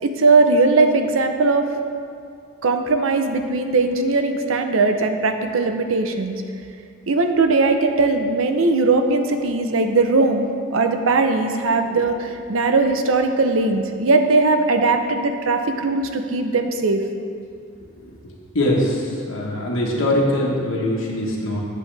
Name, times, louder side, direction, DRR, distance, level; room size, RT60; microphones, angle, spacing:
voice 1, 0.0-1.7 2.6-6.4 7.1-17.0, right 3 dB, 90° right, 6 dB, 0.6 m, -19 dB
voice 2, 18.5-21.6, left 1 dB, 80° left, -4 dB, 1.3 m, -22 dB
8.3 x 7.6 x 3.3 m, 2.3 s
head